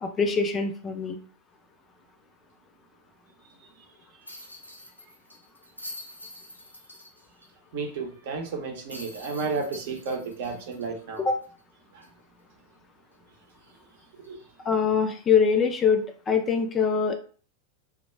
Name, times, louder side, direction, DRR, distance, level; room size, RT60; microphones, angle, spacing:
voice 1, 0.0-1.2 11.2-11.4 14.7-17.1, left 6 dB, 20° left, 0.3 m, -23 dB
sound 1, 4.3-7.5 7.8-7.9 8.9-11.6 12.0-12.1 14.2-14.4, left 1 dB, 90° left, 0.5 m, -45 dB
voice 2, 7.7-11.3 11.9-12.0 14.3-14.4, right 4 dB, 50° right, 0.7 m, -32 dB
2.3 x 2.1 x 3.1 m
figure-of-eight pair, 90°, 0 cm